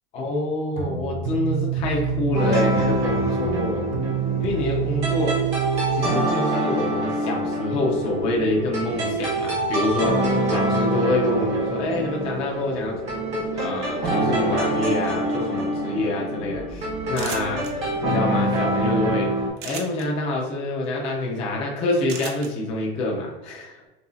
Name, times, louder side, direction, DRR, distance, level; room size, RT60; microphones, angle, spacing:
voice 1, 0.1-3.9 4.4-5.4 5.9-13.0 13.5-17.6 18.0-19.3 19.6-23.9, left 2 dB, 20° left, -1 dB, 0.5 m, -26 dB
sound 1, 0.7-6.1, right 8 dB, 65° right, 1.2 m, -27 dB
sound 2, 2.3-19.5, right 1 dB, 20° right, 1.0 m, -25 dB
sound 3, 17.1-17.7 19.6-20.1 22.1-22.5, right 6 dB, 50° right, 0.7 m, -34 dB
6.8 x 2.7 x 2.3 m, 1.1 s
supercardioid pair, 175°, 32 cm